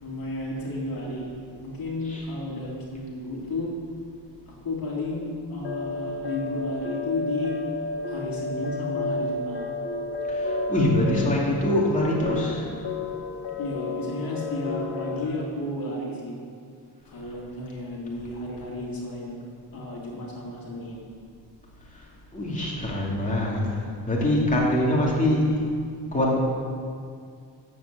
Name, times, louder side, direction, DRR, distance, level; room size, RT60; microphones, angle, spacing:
voice 1, 0.0-1.3 1.6-3.7 4.5-7.5 8.1-9.7 11.1-11.4 13.6-16.4 17.0-19.4 19.7-21.0, left 1 dB, 50° left, -3 dB, 2.8 m, -32 dB
sound 1, 5.6-15.2, left 3 dB, 85° left, 1.5 m, -32 dB
voice 2, 10.3-12.7 21.9-25.4 26.1-26.4, left 1 dB, 15° left, -4 dB, 2.8 m, -24 dB
10.0 x 7.7 x 7.6 m, 2.2 s
cardioid pair, 90°, 43 cm